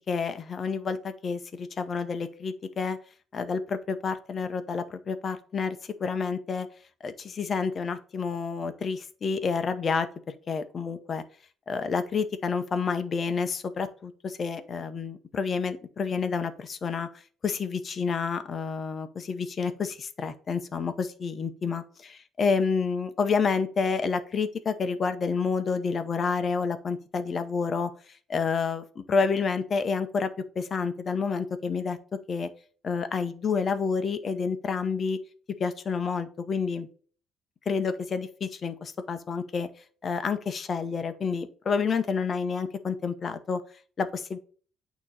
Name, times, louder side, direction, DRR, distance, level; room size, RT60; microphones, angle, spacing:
voice 1, 0.1-3.0 3.3-6.7 7.0-10.1 10.5-11.2 11.7-17.1 17.4-27.9 28.3-30.3 30.6-32.0 32.3-32.5 32.8-35.2 35.6-36.9 37.7-39.7 40.0-43.6 44.0-44.4, left 5 dB, 35° left, 10 dB, 0.8 m, -29 dB
8.9 x 3.0 x 4.1 m, 0.42 s
cardioid pair, 135°, 0 cm